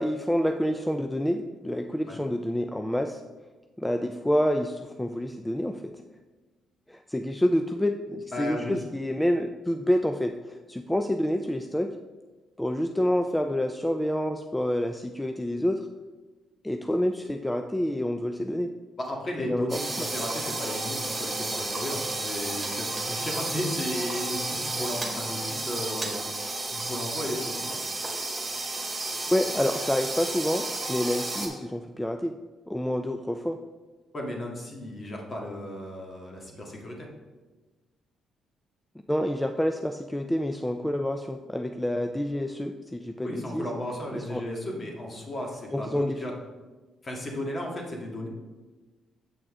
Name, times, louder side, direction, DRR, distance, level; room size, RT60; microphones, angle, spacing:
voice 1, 0.0-3.2 3.8-5.9 6.9-11.9 12.6-15.9 16.6-18.7 19.4-20.1 29.3-32.4 32.7-33.6 39.1-43.7 44.1-44.4 45.7-46.2, equal, 5° left, 6 dB, 0.4 m, -28 dB
voice 2, 8.3-8.8 19.0-26.3 26.7-27.8 34.1-37.1 43.2-46.3 47.0-48.3, left 1 dB, 35° left, -1 dB, 1.8 m, -34 dB
sound 1, 19.7-31.5, right 2 dB, 20° right, 2.0 m, -32 dB
7.8 x 5.9 x 3.6 m, 1.3 s
cardioid pair, 90°, 0 cm